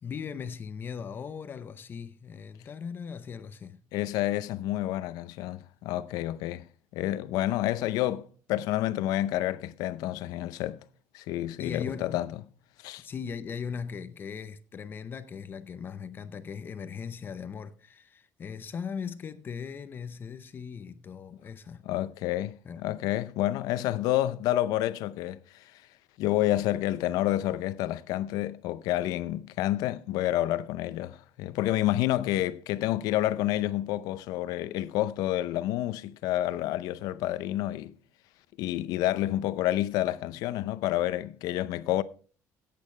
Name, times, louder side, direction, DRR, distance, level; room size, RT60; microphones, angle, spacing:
voice 1, 0.0-3.8 11.6-12.2 13.0-21.8 22.6-22.9, left 6 dB, 35° left, 0.7 m, -39 dB
voice 2, 3.9-6.7 6.9-10.8 11.1-12.3 12.8-13.1 21.8-25.8 26.2-37.9 38.6-42.0, left 14 dB, 90° left, 0.6 m, -29 dB
16.0 x 8.5 x 3.2 m
cardioid pair, 140°, 6 cm